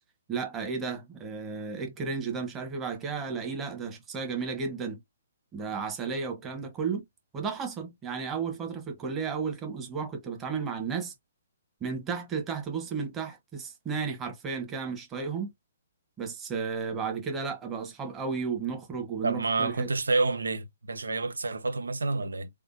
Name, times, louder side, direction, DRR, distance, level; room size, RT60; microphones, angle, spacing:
voice 1, 0.3-5.0 5.5-7.0 7.3-11.1 11.8-15.5 16.2-19.9, right 5 dB, 20° right, 1.4 m, -33 dB
voice 2, 19.2-22.5, right 3 dB, 85° right, 0.8 m, -28 dB
3.6 x 3.2 x 2.7 m
hypercardioid pair, 135°, 0 cm